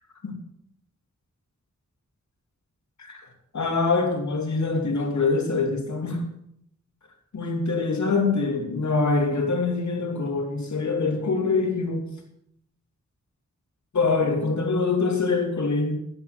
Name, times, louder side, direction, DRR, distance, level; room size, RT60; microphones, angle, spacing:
voice 1, 3.5-6.2 7.3-12.1 13.9-15.9, left 4 dB, 75° left, 2.9 m, -24 dB
13.5 x 11.0 x 6.1 m
wide cardioid pair, 120°, 29 cm